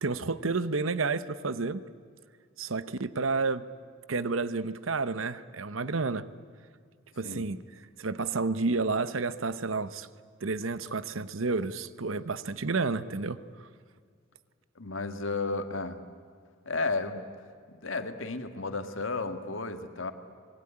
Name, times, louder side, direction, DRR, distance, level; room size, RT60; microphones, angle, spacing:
voice 1, 0.0-1.8 2.6-3.6 4.1-6.3 7.2-7.6 8.0-10.1 10.4-13.4, right 3 dB, 80° right, 15 dB, 0.9 m, -30 dB
voice 2, 14.8-16.0 16.7-17.2 17.7-20.1, left 3 dB, 75° left, 8 dB, 1.7 m, -33 dB
25.5 x 21.0 x 10.0 m, 2.1 s
head